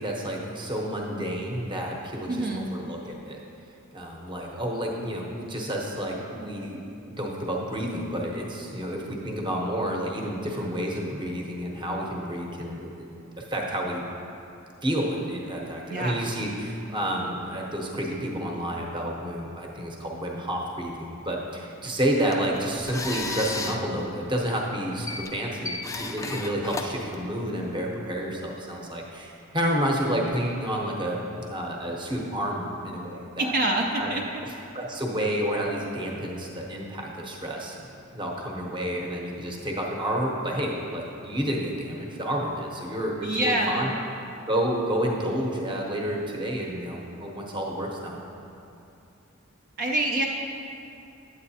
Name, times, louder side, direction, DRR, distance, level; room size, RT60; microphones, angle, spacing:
voice 1, 0.0-3.4 3.9-6.8 7.1-12.9 13.4-14.0 14.8-33.5 34.0-34.1 34.4-37.9 38.1-43.9 44.5-48.2, equal, 25° right, -1 dB, 0.8 m, -30 dB
voice 2, 2.3-2.7 15.9-16.2 33.4-34.2 43.2-44.0 49.8-50.2, right 1 dB, 50° right, -1 dB, 0.5 m, -26 dB
sound 1, 22.1-27.7, left 3 dB, 15° left, 0.3 m, -35 dB
9.2 x 8.1 x 2.7 m, 2.7 s
head